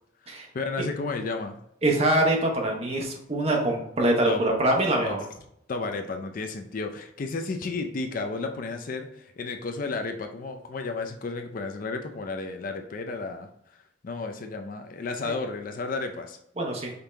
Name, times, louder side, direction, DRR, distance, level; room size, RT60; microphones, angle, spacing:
voice 1, 0.5-1.6 4.3-4.4 5.0-5.2 5.7-16.4, left 3 dB, 45° left, 5 dB, 0.4 m, -33 dB
voice 2, 1.8-5.2 15.3-15.4 16.6-16.9, right 1 dB, 30° right, 0 dB, 0.9 m, -24 dB
5.2 x 2.8 x 3.3 m, 0.74 s
head